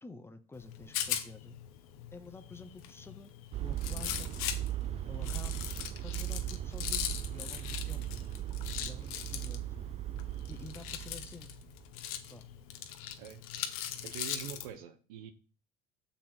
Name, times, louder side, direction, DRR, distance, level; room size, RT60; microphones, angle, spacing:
voice 1, 0.0-1.6 2.1-3.3 3.6-4.3 5.1-5.7 6.0-8.2 8.8-9.9 10.5-11.5 12.3-12.5, left 3 dB, 15° left, 8 dB, 0.8 m, -49 dB
Rattle, 0.5-14.7, left 11 dB, 80° left, 0.9 m, -40 dB
sound 1, 3.5-11.8, right 13 dB, 35° right, 0.4 m, -38 dB
voice 2, 13.8-15.3, right 9 dB, 80° right, 10 dB, 1.1 m, -45 dB
7.2 x 4.2 x 5.9 m, 0.36 s
supercardioid pair, 95°, 18 cm